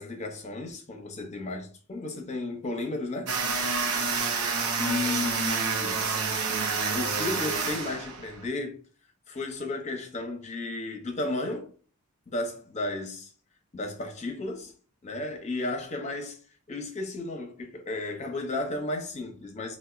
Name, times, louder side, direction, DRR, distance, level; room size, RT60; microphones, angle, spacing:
voice 1, 0.0-3.4 4.8-6.0 6.9-8.8 9.3-11.7 12.3-13.3 13.7-14.7 15.0-16.4 16.7-19.8, left 2 dB, 30° left, 0.6 m, -33 dB
sound 1, 3.3-8.4, right 4 dB, 75° right, 0.6 m, -28 dB
4.0 x 2.1 x 2.3 m
head